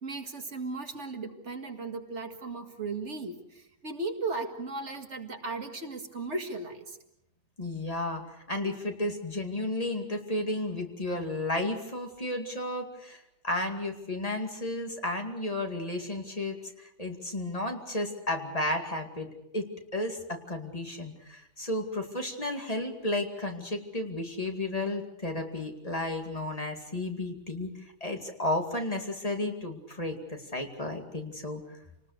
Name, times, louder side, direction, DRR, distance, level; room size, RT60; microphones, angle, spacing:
voice 1, 0.0-7.0, right 3 dB, 80° right, 5 dB, 2.3 m, -36 dB
voice 2, 7.6-19.7 19.9-27.7 28.0-31.6, left 1 dB, 30° left, 3 dB, 2.4 m, -33 dB
28.0 x 19.5 x 6.6 m, 0.85 s
omnidirectional pair, 1.2 m